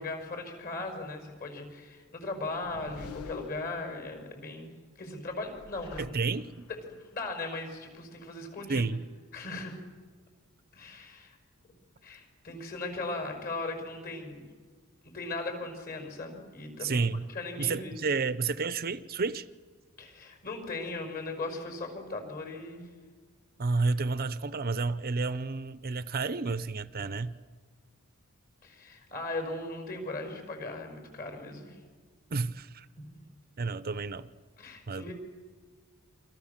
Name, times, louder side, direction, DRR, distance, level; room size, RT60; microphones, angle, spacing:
voice 1, 0.0-4.7 5.0-6.1 6.7-8.8 9.3-9.8 10.7-11.3 12.0-14.4 15.0-17.1 17.3-18.0 20.0-22.9 28.6-31.7 34.6-35.1, left 2 dB, 45° left, 6.1 m, -38 dB
sound 1, 2.3-4.3 5.3-6.8, left 4 dB, 90° left, 1.0 m, -46 dB
voice 2, 6.0-6.7 8.7-9.0 16.8-17.2 17.6-19.5 23.6-27.4 32.3-32.9 33.6-34.3 34.9-35.1, right 4 dB, 45° right, 0.7 m, -30 dB
29.0 x 26.0 x 7.3 m
head